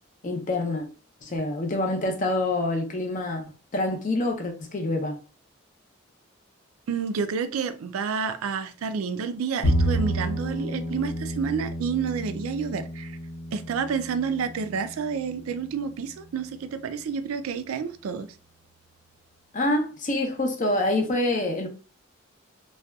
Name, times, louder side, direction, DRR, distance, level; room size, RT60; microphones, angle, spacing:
voice 1, 0.2-0.9 1.2-3.4 3.7-5.2 19.5-21.7, left 2 dB, 40° left, 0.5 m, -26 dB
voice 2, 6.9-13.2 13.5-18.3, right 6 dB, 90° right, 0.3 m, -29 dB
Bowed string instrument, 9.6-16.0, right 1 dB, 85° left, 0.7 m, -30 dB
2.7 x 2.2 x 2.2 m
head